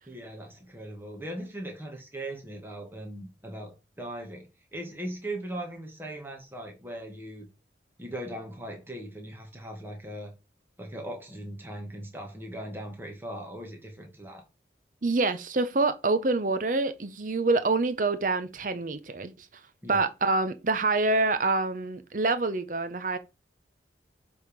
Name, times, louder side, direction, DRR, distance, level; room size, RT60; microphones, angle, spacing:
voice 1, 0.1-7.5 8.0-10.3 10.8-14.4 19.8-20.0, right 1 dB, 10° right, 1.4 m, -39 dB
voice 2, 15.0-19.5 19.9-23.2, right 3 dB, 45° right, 0.7 m, -26 dB
7.6 x 3.6 x 5.0 m
head